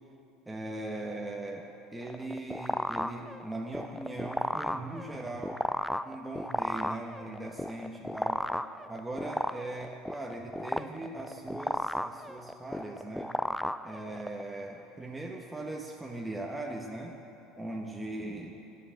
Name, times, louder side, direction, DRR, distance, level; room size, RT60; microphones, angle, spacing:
voice 1, 0.5-5.6 6.0-8.4 8.9-13.4 13.8-17.1 17.5-18.5, right 2 dB, 15° right, 0 dB, 1.1 m, -39 dB
sound 1, 2.0-14.4, left 1 dB, 5° left, 0.4 m, -34 dB
10.5 x 7.2 x 9.1 m, 2.8 s
supercardioid pair, 85°, 0 cm